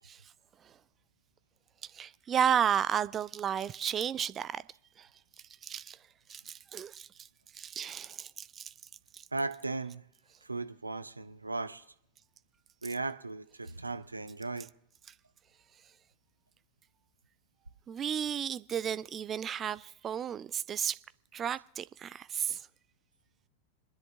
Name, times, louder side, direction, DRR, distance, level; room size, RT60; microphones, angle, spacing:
voice 1, 1.8-4.6 5.0-5.1 5.6-6.0 6.3-7.1 7.5-8.7 9.1-9.2 17.9-21.0 21.3-22.7, right 8 dB, 25° right, 0.4 m, -33 dB
voice 2, 9.3-10.0 10.4-11.8 12.8-14.7, right 3 dB, 80° right, 0.7 m, -37 dB
26.5 x 10.5 x 3.4 m
figure-of-eight pair, 90°, 0 cm